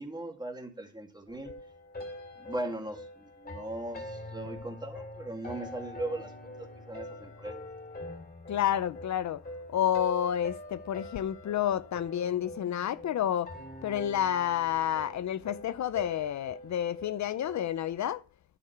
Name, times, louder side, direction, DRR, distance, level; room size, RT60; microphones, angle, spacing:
voice 1, 0.0-1.5 2.4-6.3 6.6-7.7, right 1 dB, 15° right, 2.1 m, -39 dB
sound 1, 1.3-17.7, left 1 dB, 30° left, 3.2 m, -44 dB
voice 2, 8.5-9.4 9.7-13.5 13.8-18.2, left 10 dB, 70° left, 0.5 m, -30 dB
10.0 x 7.0 x 4.6 m
wide cardioid pair, 110°, 30 cm